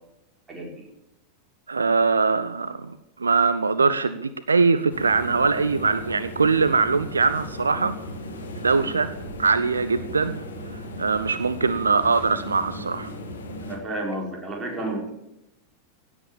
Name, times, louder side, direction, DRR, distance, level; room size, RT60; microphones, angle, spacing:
voice 1, 0.5-0.9 13.6-15.1, right 1 dB, 15° right, 0 dB, 5.0 m, -31 dB
voice 2, 1.7-7.9 8.6-9.1 9.4-13.1, right 4 dB, 75° right, 13 dB, 0.7 m, -22 dB
sound 1, 4.9-13.8, left 1 dB, 70° left, 2.7 m, -36 dB
17.0 x 8.7 x 7.3 m, 0.86 s
figure-of-eight pair, 90°, 0 cm